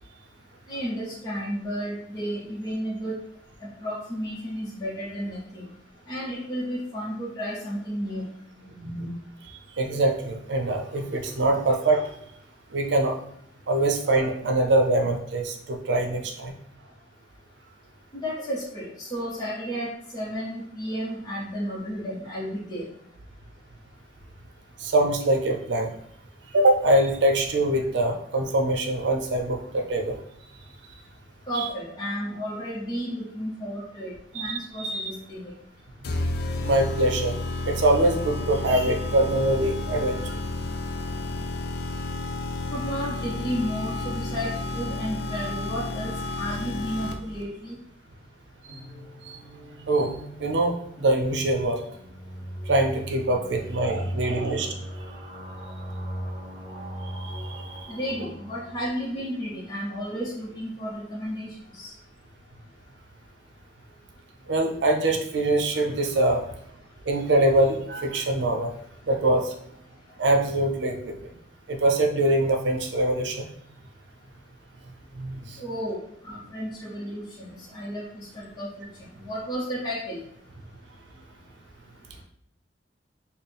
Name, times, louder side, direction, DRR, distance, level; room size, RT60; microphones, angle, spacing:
voice 1, 0.7-3.2 3.6-5.7 6.1-8.3 18.1-22.9 31.5-35.5 42.7-47.8 57.9-61.9 75.6-78.9 79.2-80.2, equal, 20° left, -7 dB, 0.7 m, -32 dB
voice 2, 8.8-9.1 9.4-12.2 12.7-13.2 13.7-16.5 24.8-25.9 26.5-30.2 31.5-31.7 34.3-35.1 36.6-37.4 37.6-40.4 49.2-49.4 49.9-50.1 50.4-51.8 52.7-54.7 57.2-57.9 64.5-66.4 67.1-68.7 69.1-69.5 70.2-71.1 71.7-73.5 75.2-75.6, right 1 dB, 75° right, 3 dB, 0.6 m, -24 dB
sound 1, 36.0-47.4, left 2 dB, 60° left, 0.4 m, -31 dB
sound 2, 48.6-59.4, right 1 dB, 30° right, 1.2 m, -38 dB
4.3 x 2.0 x 3.4 m, 0.71 s
head